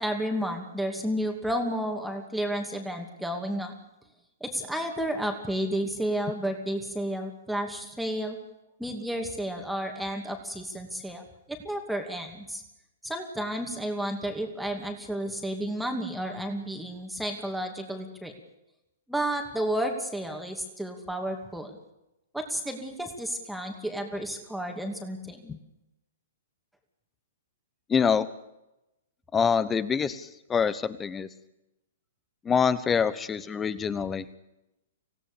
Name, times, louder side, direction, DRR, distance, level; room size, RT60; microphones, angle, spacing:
voice 1, 0.0-3.7 4.4-8.4 8.8-12.6 13.0-18.3 19.1-21.8 22.3-25.6, right 1 dB, ahead, 3 dB, 2.6 m, -32 dB
voice 2, 27.9-28.3 29.3-31.3 32.4-34.4, left 6 dB, 15° left, 16 dB, 1.2 m, -25 dB
26.0 x 17.0 x 6.9 m, 0.92 s
figure-of-eight pair, 115°, 0 cm